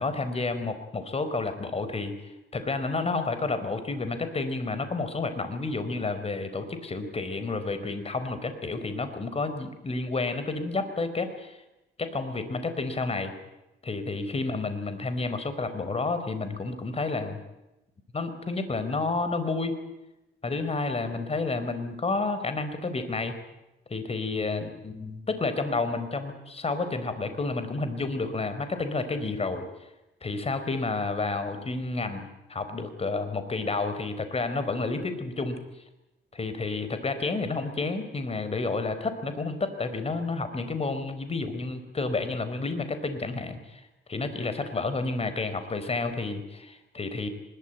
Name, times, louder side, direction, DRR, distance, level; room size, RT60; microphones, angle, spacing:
voice 1, 0.0-11.6 12.0-13.3 13.8-17.4 18.1-19.8 20.4-23.3 23.9-29.6 30.2-35.6 36.3-43.8 44.1-47.3, left 3 dB, 30° left, 10 dB, 4.5 m, -30 dB
23.5 x 21.5 x 9.2 m, 0.95 s
cardioid pair, 90°, 20 cm